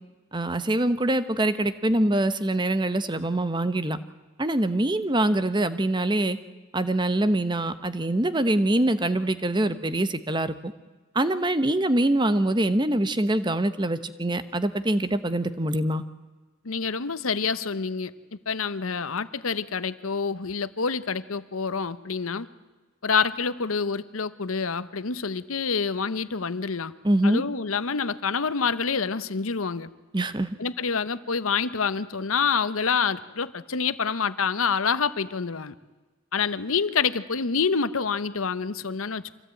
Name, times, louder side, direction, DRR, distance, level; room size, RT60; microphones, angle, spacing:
voice 1, 0.3-4.0 4.4-6.4 6.7-10.5 11.1-16.0 27.0-27.4 30.1-30.5, right 1 dB, 20° right, 12 dB, 0.9 m, -24 dB
voice 2, 16.6-18.1 18.5-22.5 23.0-26.9 27.2-29.9 30.6-35.7 36.3-39.3, left 5 dB, 90° left, 14 dB, 0.9 m, -27 dB
25.0 x 16.5 x 9.0 m, 1.2 s
head